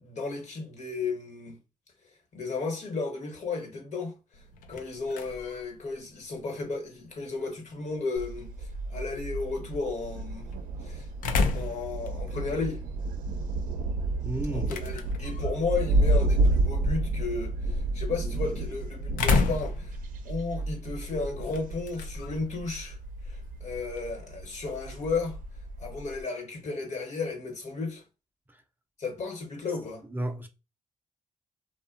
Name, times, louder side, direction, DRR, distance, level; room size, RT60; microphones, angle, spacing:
voice 1, 0.0-1.6 2.3-4.1 4.7-10.5 10.8-11.1 11.5-12.8 14.5-20.0 20.2-23.0 23.3-25.4 25.8-28.0 29.0-30.0, left 4 dB, 60° left, 1.1 m, -34 dB
sound 1, 4.3-24.2, left 3 dB, 85° left, 0.4 m, -36 dB
Thunder, 8.2-26.2, right 2 dB, 85° right, 0.4 m, -31 dB
voice 2, 14.2-14.7 28.5-28.6 30.1-30.5, right 1 dB, 15° right, 0.4 m, -32 dB
2.6 x 2.1 x 2.5 m
cardioid pair, 65°, 14 cm